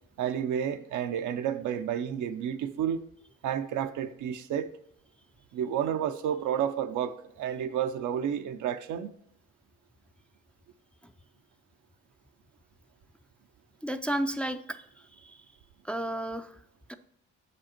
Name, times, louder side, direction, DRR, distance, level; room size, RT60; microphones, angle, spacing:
voice 1, 0.2-3.0 3.4-4.7 5.5-9.1, right 9 dB, 80° right, 0.6 m, -31 dB
voice 2, 13.8-14.8 15.2-15.4 15.8-16.6 16.9-17.0, right 1 dB, 5° left, 0.3 m, -32 dB
6.4 x 5.3 x 4.3 m
cardioid pair, 90°, 30 cm